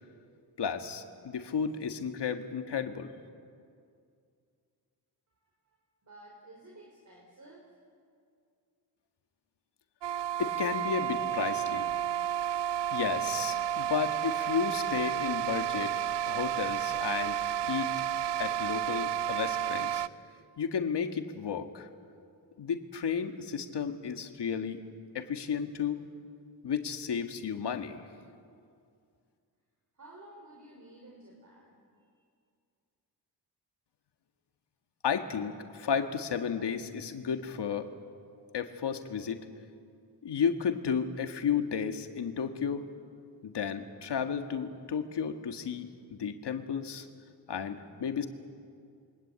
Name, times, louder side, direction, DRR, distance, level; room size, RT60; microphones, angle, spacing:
voice 1, 0.6-3.1 10.4-11.9 12.9-15.9 16.3-17.9 18.4-20.0 20.6-21.9 22.6-24.8 25.1-26.1 26.6-28.0 35.0-37.9 38.5-39.4 40.2-42.9 43.4-47.1 47.5-48.3, left 7 dB, 75° left, 6 dB, 1.9 m, -33 dB
voice 2, 6.0-7.7 29.9-32.2, right 1 dB, 45° right, -1 dB, 5.1 m, -53 dB
sound 1, 10.0-20.1, right 11 dB, 80° right, 0.6 m, -31 dB
28.0 x 24.0 x 8.8 m, 2.3 s
cardioid pair, 80°, 41 cm